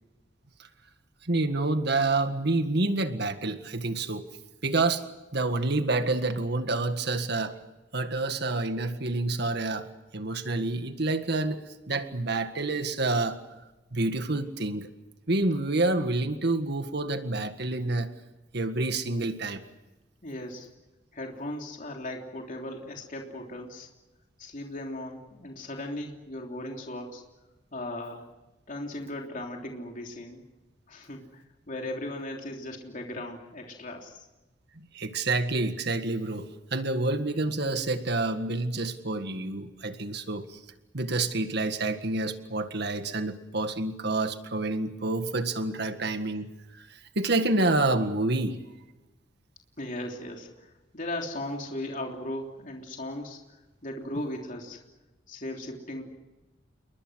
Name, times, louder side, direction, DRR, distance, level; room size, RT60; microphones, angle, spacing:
voice 1, 1.2-4.3 4.6-5.0 5.3-7.6 7.9-9.9 10.1-11.6 11.9-13.4 13.9-14.9 15.3-18.1 18.5-19.6 34.9-40.6 40.9-46.5 46.7-48.6, right 2 dB, 60° right, 8 dB, 1.8 m, -28 dB
voice 2, 20.2-20.7 21.1-23.9 24.4-27.2 27.7-28.3 28.7-30.4 30.9-34.3 49.8-53.4 53.8-54.8 55.3-56.0, left 1 dB, 45° left, 1 dB, 3.3 m, -37 dB
29.0 x 22.5 x 6.4 m, 1.0 s
head